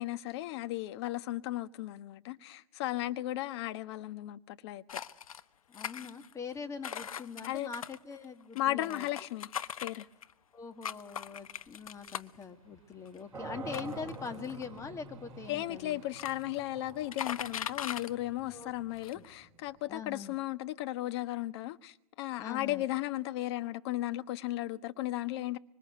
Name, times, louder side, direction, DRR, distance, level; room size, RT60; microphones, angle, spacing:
voice 1, 0.0-5.0 7.5-7.7 8.5-9.5 9.8-10.1 15.5-25.6, left 15 dB, 50° left, 1.3 m, -35 dB
sound 1, 4.9-5.4 5.7-6.5 6.8-10.3 10.8-12.4 13.1-13.2 13.7-14.8 15.6-15.7 15.9-16.6 16.9-18.1 18.6-18.7 19.0-19.3, left 8 dB, 80° left, 1.2 m, -40 dB
voice 2, 5.7-9.1 10.5-16.0 18.5-18.7 19.0-19.2 19.9-20.4 22.4-22.9, left 5 dB, 15° left, 2.0 m, -43 dB
sound 2, 10.1-16.4, right 10 dB, 30° right, 7.3 m, -66 dB
sound 3, 13.3-20.2, right 3 dB, 15° right, 6.4 m, -47 dB
26.0 x 24.0 x 8.1 m
hypercardioid pair, 120°, 18 cm